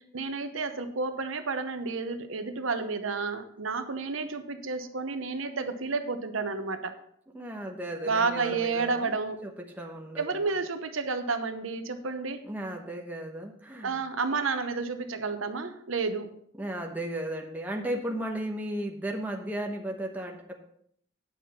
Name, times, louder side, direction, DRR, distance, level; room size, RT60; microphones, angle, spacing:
voice 1, 0.0-7.0 8.0-9.4 10.2-12.4 13.8-16.3, right 4 dB, 85° right, 8 dB, 0.9 m, -31 dB
voice 2, 7.3-9.1 9.4-10.5 12.4-14.0 16.6-20.6, right 1 dB, 10° right, 1 dB, 1.0 m, -35 dB
9.1 x 5.9 x 5.5 m, 0.67 s
head